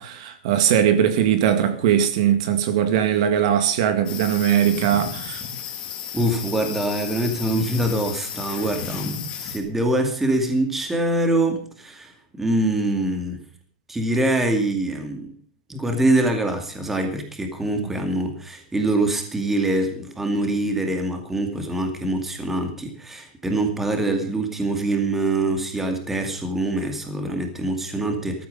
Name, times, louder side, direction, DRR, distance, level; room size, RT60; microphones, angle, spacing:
voice 1, 0.0-5.4 17.8-17.9, right 9 dB, 45° right, 2.0 m, -20 dB
sound 1, 4.1-9.6, left 8 dB, 20° left, 3.0 m, -33 dB
voice 2, 6.1-12.1 12.4-13.4 13.9-15.3 15.7-28.5, right 1 dB, 5° right, 2.3 m, -24 dB
14.5 x 14.0 x 5.4 m
supercardioid pair, 170°, 5 cm